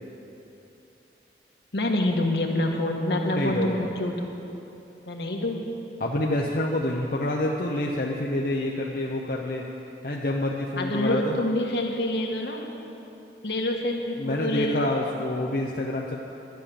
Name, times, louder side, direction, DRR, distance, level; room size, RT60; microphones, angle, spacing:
voice 1, 1.7-4.3 5.0-5.8 10.8-12.7 13.4-14.9, left 1 dB, 70° left, 1 dB, 1.5 m, -26 dB
voice 2, 3.2-3.9 6.0-9.6 10.0-11.4 14.2-16.2, left 1 dB, 55° left, -2 dB, 0.8 m, -27 dB
11.5 x 10.0 x 6.9 m, 2.9 s
head